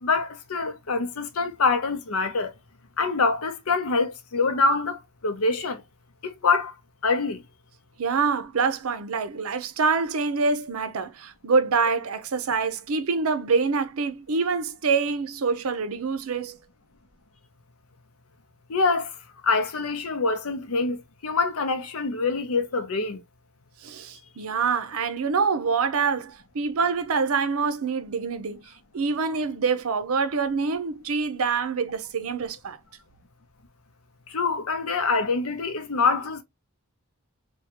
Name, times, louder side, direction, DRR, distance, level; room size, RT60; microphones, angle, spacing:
voice 1, 0.0-2.5 3.0-5.8 6.2-6.7 7.0-7.4 18.7-19.2 19.4-23.2 34.3-36.4, left 4 dB, 85° left, 0.7 m, -25 dB
voice 2, 8.0-16.6 23.8-32.8, right 5 dB, 80° right, 0.6 m, -26 dB
3.5 x 2.3 x 2.9 m
head